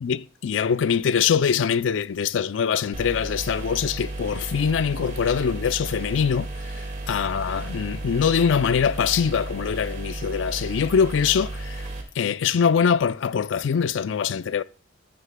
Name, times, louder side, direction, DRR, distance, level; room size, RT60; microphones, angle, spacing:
voice 1, 0.0-6.7 7.1-11.9 12.2-14.6, left 7 dB, 80° left, 0.4 m, -23 dB
sound 1, 2.9-12.0, right 2 dB, 40° right, 2.0 m, -33 dB
13.0 x 9.9 x 2.2 m
head